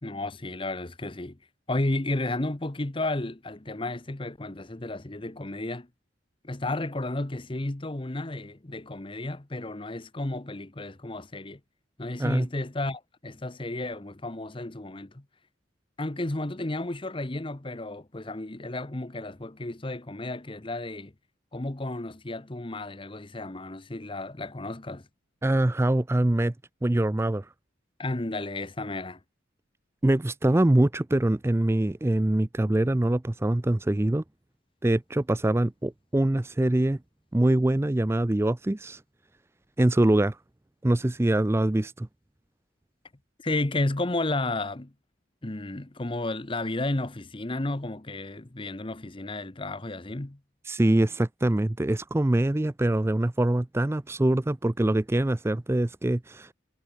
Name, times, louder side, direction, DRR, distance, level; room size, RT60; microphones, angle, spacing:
voice 1, 0.0-1.4 1.7-5.9 6.4-11.6 12.0-15.2 16.0-21.1 21.5-25.1 28.0-29.2 43.4-44.9 45.4-50.4, left 2 dB, 25° left, 0.9 m, -32 dB
voice 2, 25.4-26.5 26.8-27.5 30.0-34.2 34.8-37.0 37.3-39.0 39.8-40.4 40.8-42.1 50.6-56.5, right 1 dB, 10° right, 0.4 m, -24 dB
head